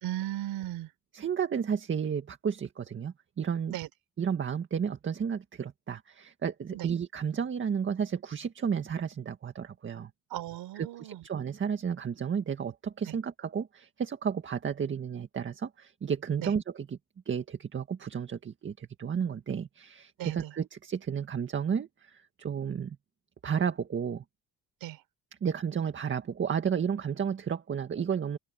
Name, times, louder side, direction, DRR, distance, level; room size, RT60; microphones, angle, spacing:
voice 1, 0.0-0.9 3.7-3.9 6.7-6.9 10.3-11.2 13.1-13.2 16.4-16.5 20.2-20.5 24.8-25.0, right 14 dB, 85° right, 3.9 m, -36 dB
voice 2, 1.1-3.8 4.2-10.1 10.8-17.0 17.3-23.0 23.4-24.2 25.4-28.4, right 7 dB, 35° right, 1.9 m, -32 dB
open air
cardioid pair, 140°, 34 cm